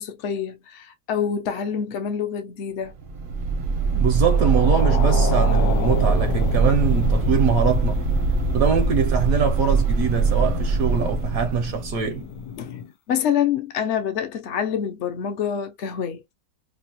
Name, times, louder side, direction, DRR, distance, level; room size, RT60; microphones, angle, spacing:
voice 1, 0.0-3.0 12.6-12.8 13.1-16.2, left 8 dB, 60° left, 0.7 m, -26 dB
sound 1, 3.0-12.3, right 4 dB, 50° right, 0.6 m, -22 dB
voice 2, 3.9-8.0 8.5-12.3, right 6 dB, 70° right, 0.9 m, -23 dB
sound 2, 4.2-12.9, left 9 dB, 80° left, 1.2 m, -33 dB
2.9 x 2.3 x 2.7 m
omnidirectional pair, 1.9 m